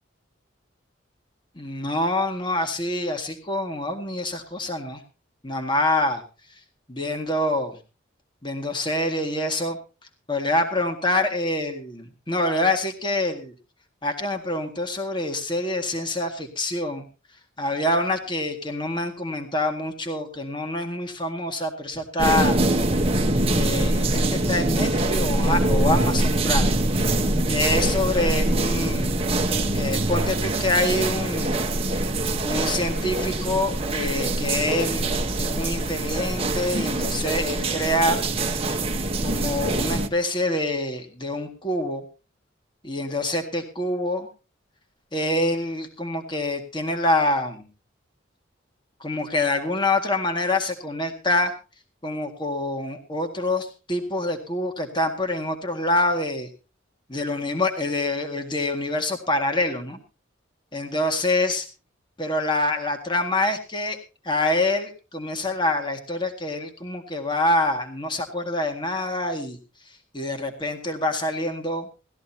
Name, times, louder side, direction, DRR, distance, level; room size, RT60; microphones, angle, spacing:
voice 1, 1.6-5.0 5.4-6.2 6.9-7.7 8.4-9.8 10.3-13.5 14.0-17.1 17.6-22.6 23.5-26.7 27.5-29.2 29.7-31.7 32.4-38.2 39.2-42.0 42.8-44.3 45.1-47.7 49.0-51.5 52.0-56.5 57.1-60.0 60.7-61.7 62.2-64.0 64.2-69.6 69.9-71.9, left 1 dB, 25° left, 5 dB, 1.9 m, -26 dB
sound 1, 22.2-40.1, right 2 dB, 30° right, 1.2 m, -24 dB
19.0 x 13.5 x 2.8 m, 0.32 s
head